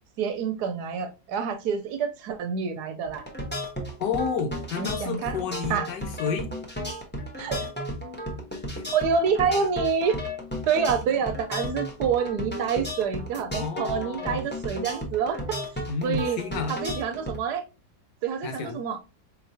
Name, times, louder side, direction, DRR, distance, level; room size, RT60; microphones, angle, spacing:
voice 1, 0.2-3.2 4.8-5.4 5.7-5.9 7.4-7.6 8.9-10.2 10.7-15.6 16.0-16.4 16.7-17.6 18.2-19.0, right 6 dB, 75° right, 1.1 m, -27 dB
sound 1, 3.1-17.4, equal, 10° left, 0.5 m, -34 dB
voice 2, 4.0-6.5 8.7-8.8 13.6-14.5 15.9-16.8 18.4-18.8, left 6 dB, 75° left, 1.5 m, -31 dB
4.6 x 2.9 x 2.6 m
omnidirectional pair, 1.9 m